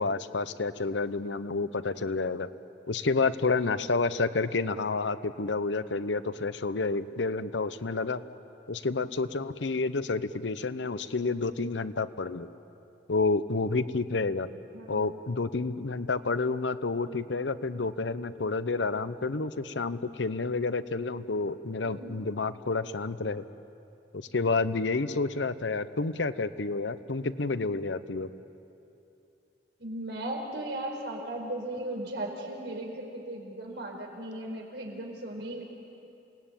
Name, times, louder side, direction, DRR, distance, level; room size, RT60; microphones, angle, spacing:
voice 1, 0.0-2.5 2.9-8.2 8.7-12.5 13.1-14.5 14.9-23.4 24.1-28.3, left 3 dB, 90° left, 13 dB, 0.8 m, -29 dB
voice 2, 14.7-15.1 21.8-22.1 29.8-35.6, right 1 dB, 75° right, 1 dB, 4.7 m, -37 dB
28.5 x 18.5 x 9.1 m, 2.8 s
head